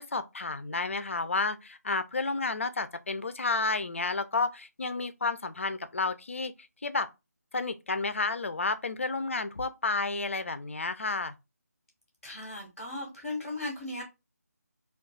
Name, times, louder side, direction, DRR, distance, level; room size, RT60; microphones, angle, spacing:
voice 1, 0.0-6.5 6.8-7.1 7.5-11.3, left 3 dB, 50° left, 0.4 m, -31 dB
voice 2, 12.2-14.0, left 2 dB, ahead, 0.6 m, -37 dB
2.3 x 2.3 x 3.7 m
figure-of-eight pair, 160°, 9 cm